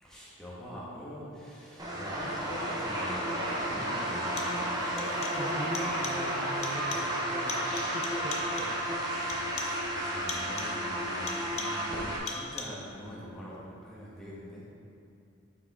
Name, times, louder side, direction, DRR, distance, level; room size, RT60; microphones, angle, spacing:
voice 1, 0.0-4.7 9.5-14.6, equal, ahead, -8 dB, 1.3 m, -44 dB
sound 1, 1.8-12.2, right 1 dB, 20° right, 0.8 m, -32 dB
sound 2, 3.1-3.2 4.1-4.7 5.0-5.5 5.7-6.3 6.6-7.2 7.5-8.8 9.3-9.9 10.3-10.8 11.3-11.9 12.3-12.9, left 4 dB, 35° left, 0.5 m, -41 dB
sound 3, 4.8-6.9, left 5 dB, 85° left, 0.5 m, -45 dB
voice 2, 5.2-8.8, right 1 dB, 40° right, -4 dB, 0.4 m, -39 dB
6.1 x 4.6 x 4.2 m, 2.6 s
head